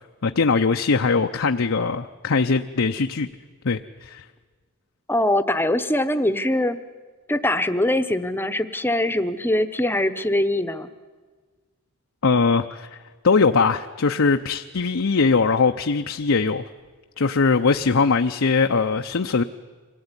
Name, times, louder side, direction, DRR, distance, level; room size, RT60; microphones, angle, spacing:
voice 1, 0.2-3.3 3.6-4.2 12.2-13.0 13.2-16.6 17.2-19.4, left 4 dB, 65° left, 5 dB, 0.7 m, -21 dB
voice 2, 5.1-6.8 7.3-10.9, left 1 dB, 10° left, 12 dB, 1.0 m, -22 dB
25.5 x 17.0 x 9.8 m, 1.4 s
head